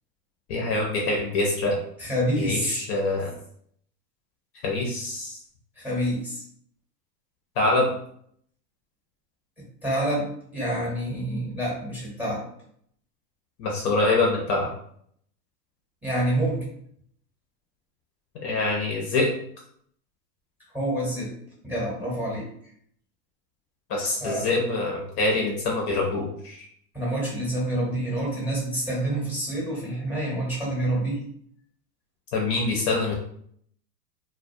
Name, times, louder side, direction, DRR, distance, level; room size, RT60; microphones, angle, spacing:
voice 1, 0.5-1.8 2.4-3.3 4.6-5.4 7.6-7.9 13.6-14.7 18.4-19.3 23.9-26.6 32.3-33.1, left 2 dB, 45° left, -1 dB, 0.6 m, -25 dB
voice 2, 2.0-2.8 5.8-6.4 9.8-12.5 16.0-16.7 20.7-21.4 21.6-22.5 24.2-24.5 26.9-31.2, right 1 dB, 5° right, -5 dB, 0.8 m, -27 dB
2.2 x 2.1 x 2.6 m, 0.65 s
hypercardioid pair, 120°, 48 cm